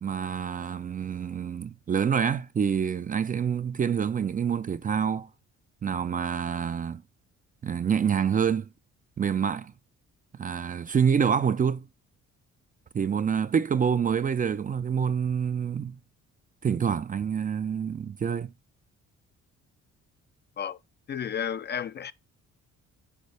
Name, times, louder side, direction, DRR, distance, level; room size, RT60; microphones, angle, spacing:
voice 1, 0.0-5.3 5.8-7.0 7.6-8.7 9.2-9.7 10.3-11.9 12.9-16.0 16.6-18.5, right 7 dB, 30° right, 0.4 m, -27 dB
voice 2, 21.1-22.1, left 8 dB, 35° left, 0.4 m, -32 dB
6.6 x 4.6 x 3.3 m
cardioid pair, 90°, 30 cm